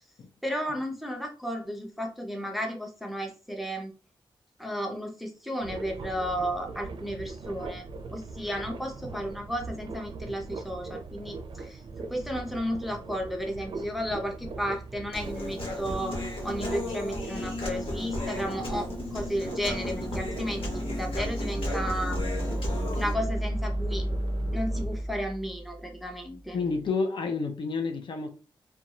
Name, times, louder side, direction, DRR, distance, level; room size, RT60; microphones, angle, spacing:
voice 1, 0.4-3.9 4.6-7.9 8.1-22.2 23.0-24.0 24.5-26.6, equal, ahead, 0.5 m, -33 dB
sound 1, 5.6-25.0, right 3 dB, 60° right, 0.4 m, -41 dB
Human voice, 15.1-23.1, left 2 dB, 80° left, 0.9 m, -35 dB
sound 2, 19.7-26.8, equal, 45° left, 0.9 m, -33 dB
voice 2, 26.5-28.3, left 4 dB, 60° left, 0.5 m, -29 dB
2.5 x 2.2 x 2.9 m
wide cardioid pair, 125°, 9 cm